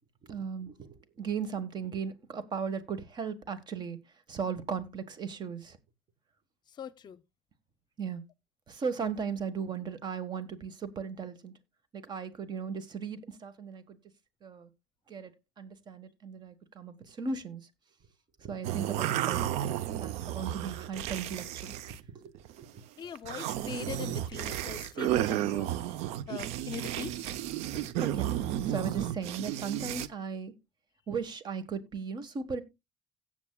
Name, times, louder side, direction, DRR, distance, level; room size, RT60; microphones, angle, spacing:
voice 1, 0.3-4.0 4.3-5.8 8.0-8.2 8.7-11.5 11.9-14.0 14.4-14.7 15.1-15.3 15.6-17.6 18.4-21.7 22.1-22.8 27.7-30.5 31.1-32.6, right 6 dB, 40° right, 1.4 m, -37 dB
voice 2, 6.7-7.2 23.0-25.9 26.3-27.2, left 8 dB, 40° left, 0.6 m, -42 dB
sound 1, 18.6-22.0 22.3-22.7 23.1-30.1, right 12 dB, 75° right, 0.6 m, -33 dB
17.0 x 7.2 x 2.3 m
cardioid pair, 105°, 11 cm